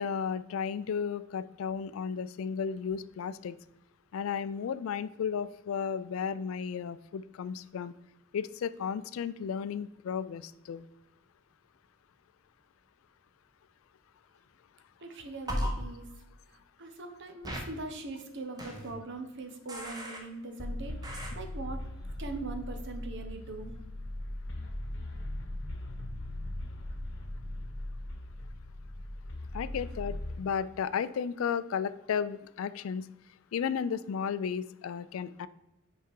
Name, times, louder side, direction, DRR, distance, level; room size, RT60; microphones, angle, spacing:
voice 1, 0.0-3.6 4.1-7.9 8.3-10.8 29.5-33.1 33.5-35.5, left 7 dB, 80° left, 15 dB, 0.3 m, -34 dB
voice 2, 15.0-16.1 16.8-21.8 22.2-23.7, right 3 dB, 60° right, 6 dB, 0.9 m, -41 dB
sound 1, 15.5-15.7 17.4-17.6 18.6-18.9 19.7-20.2 21.0-21.3, equal, 20° right, 1.0 m, -35 dB
sound 2, 20.6-30.4, left 1 dB, 60° left, 1.0 m, -39 dB
5.6 x 4.8 x 4.7 m, 0.91 s
head